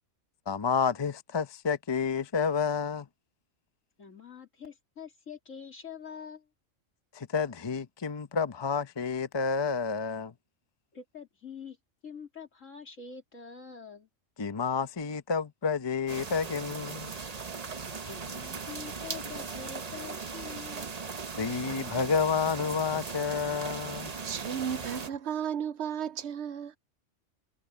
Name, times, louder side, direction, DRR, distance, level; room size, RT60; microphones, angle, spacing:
voice 1, 0.5-3.1 7.1-10.3 14.4-17.1 21.4-24.1, left 5 dB, 25° left, 0.6 m, -30 dB
voice 2, 4.0-6.5 10.9-11.8 12.0-14.1 18.1-20.9, left 6 dB, 75° left, 3.5 m, -45 dB
sound 1, 16.1-25.1, right 5 dB, 35° right, 0.9 m, -38 dB
voice 3, 24.2-26.8, right 8 dB, 65° right, 0.8 m, -34 dB
omnidirectional pair, 1.3 m